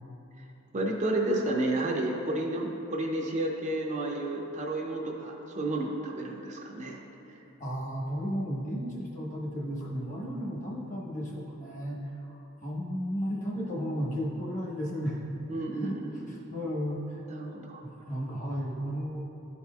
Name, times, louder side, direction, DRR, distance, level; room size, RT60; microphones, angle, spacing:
voice 1, 0.7-7.0 15.5-16.4 17.3-17.8, right 1 dB, 35° right, 0 dB, 0.5 m, -31 dB
voice 2, 7.6-12.0 12.3-15.2 15.8-17.2 17.8-19.2, equal, 35° left, -3 dB, 1.0 m, -34 dB
12.0 x 4.1 x 2.3 m, 3.0 s
head